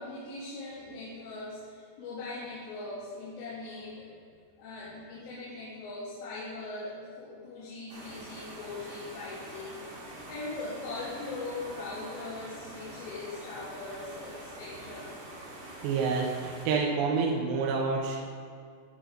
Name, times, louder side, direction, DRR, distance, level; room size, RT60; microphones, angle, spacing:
voice 1, 0.0-4.1 4.6-9.8 10.3-15.2, left 3 dB, 85° left, -12 dB, 5.4 m, -40 dB
sound 1, 7.9-16.7, right 1 dB, 40° right, 2.0 m, -45 dB
voice 2, 15.8-18.2, right 4 dB, 75° right, -2 dB, 2.8 m, -28 dB
17.5 x 6.3 x 3.8 m, 2.2 s
omnidirectional pair, 5.6 m